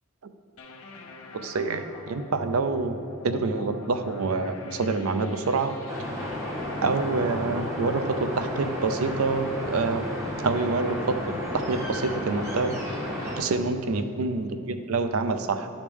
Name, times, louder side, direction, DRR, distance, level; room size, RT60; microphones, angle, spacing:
sound 1, 0.6-9.9, left 3 dB, 85° left, 0.8 m, -45 dB
voice 1, 1.4-3.0 3.2-5.8 6.8-10.1 10.4-11.2 11.5-12.8 13.4-15.7, right 3 dB, 85° right, 9 dB, 0.5 m, -26 dB
sound 2, 5.9-13.4, left 1 dB, 15° right, 1.3 m, -32 dB
11.5 x 5.0 x 3.6 m, 2.8 s
head